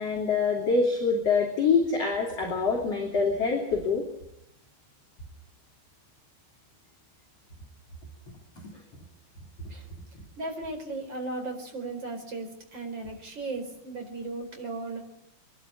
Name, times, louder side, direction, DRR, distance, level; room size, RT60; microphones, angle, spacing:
voice 1, 0.0-4.0, left 4 dB, 40° left, 0 dB, 3.8 m, -25 dB
voice 2, 10.4-15.0, right 2 dB, 25° right, 3 dB, 4.9 m, -36 dB
25.5 x 12.5 x 9.8 m, 0.77 s
omnidirectional pair, 5.0 m